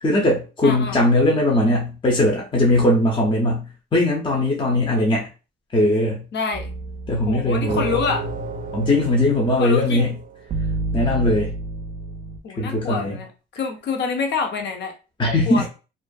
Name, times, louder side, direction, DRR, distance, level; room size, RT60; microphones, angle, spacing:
voice 1, 0.0-3.7 3.9-5.3 5.7-6.2 7.1-7.8 8.7-10.1 10.9-11.5 12.6-13.2 15.2-15.7, left 1 dB, 25° left, -2 dB, 0.7 m, -19 dB
voice 2, 0.6-1.0 6.3-6.7 7.3-8.3 9.6-10.1 12.4-13.3 13.5-14.9 15.5-15.6, left 5 dB, 60° left, 4 dB, 0.7 m, -26 dB
sound 1, 6.5-12.4, right 2 dB, 40° right, 0.5 m, -30 dB
2.5 x 2.4 x 2.3 m, 0.33 s
cardioid pair, 90°, 20 cm